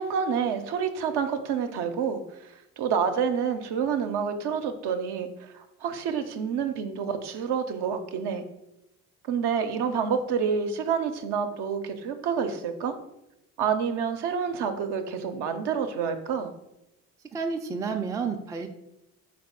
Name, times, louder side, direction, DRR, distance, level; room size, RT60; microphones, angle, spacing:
voice 1, 0.0-8.4 9.2-13.0 13.6-16.5, right 6 dB, 60° right, 7 dB, 0.7 m, -28 dB
voice 2, 17.3-18.7, right 5 dB, 10° right, 4 dB, 0.4 m, -30 dB
4.1 x 2.6 x 4.6 m, 0.89 s
hypercardioid pair, 45°, 46 cm